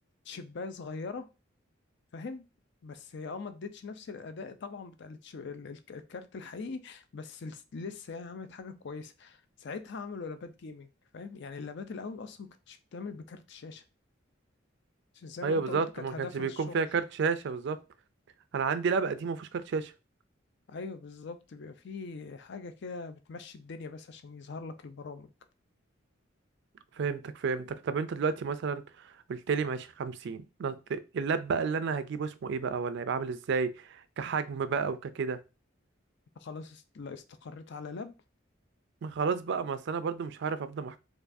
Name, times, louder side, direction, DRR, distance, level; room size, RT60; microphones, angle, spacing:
voice 1, 0.2-1.3 2.1-2.5 2.8-13.8 15.1-16.8 20.7-25.3 36.4-38.1, left 4 dB, 65° left, 0.5 m, -42 dB
voice 2, 15.4-17.8 18.5-19.9 27.0-28.8 29.3-35.4 39.0-41.0, right 5 dB, 65° right, 0.4 m, -31 dB
4.5 x 2.3 x 2.6 m
head